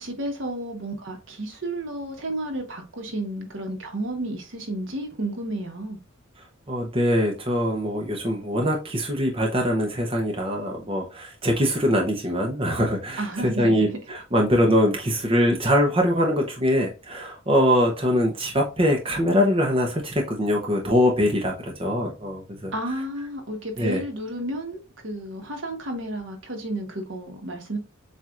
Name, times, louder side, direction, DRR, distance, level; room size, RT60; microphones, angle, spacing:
voice 1, 0.0-6.0 13.2-14.0 22.7-27.8, right 1 dB, 65° right, 1.2 m, -32 dB
voice 2, 6.7-22.7 23.8-24.0, equal, 25° right, 0.7 m, -23 dB
7.3 x 2.5 x 2.4 m
head